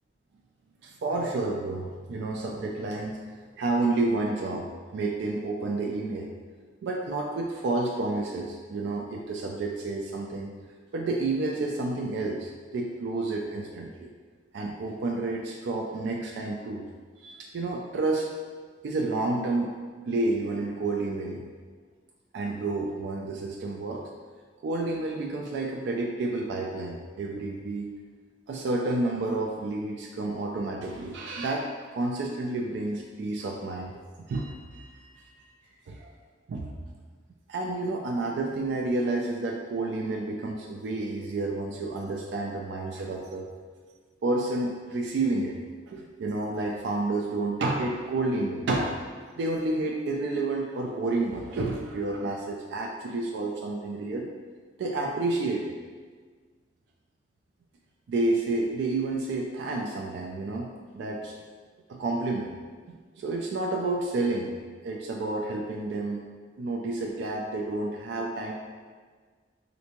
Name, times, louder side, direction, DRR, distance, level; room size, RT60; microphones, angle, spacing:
voice 1, 0.8-3.2 3.6-6.3 6.8-10.5 10.9-14.1 14.5-16.9 17.2-18.3 18.8-19.7 20.1-21.4 22.3-24.1 24.6-27.9 28.5-33.9 34.3-35.4 35.9-36.1 36.5-36.7 37.5-43.5 44.2-45.6 45.9-49.1 49.4-54.3 54.8-55.8 58.1-60.7 60.9-61.3 61.9-62.5 62.9-64.5 64.8-66.2 66.6-68.5, right 2 dB, 65° right, 0 dB, 0.3 m, -30 dB
3.3 x 2.6 x 2.9 m, 1.5 s
head